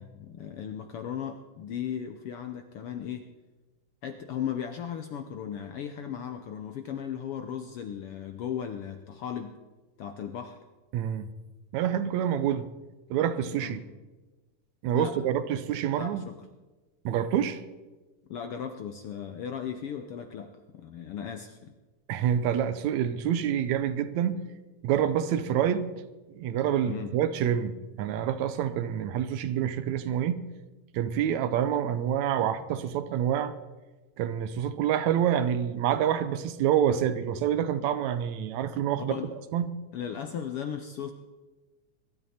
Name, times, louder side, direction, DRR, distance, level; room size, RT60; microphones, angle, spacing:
voice 1, 0.0-3.3 4.0-9.5 10.0-10.6 13.6-13.8 14.9-15.2 15.9-16.4 18.3-21.7 26.8-27.1 39.1-39.3 39.9-41.1, left 8 dB, 75° left, 7 dB, 1.3 m, -36 dB
voice 2, 10.9-11.3 11.7-12.7 13.1-13.8 14.8-16.2 17.1-17.6 22.1-24.4 24.8-25.9 26.3-30.4 30.9-33.5 34.2-39.7, right 9 dB, 75° right, 12 dB, 2.0 m, -27 dB
23.0 x 12.5 x 4.3 m, 1.2 s
omnidirectional pair, 3.5 m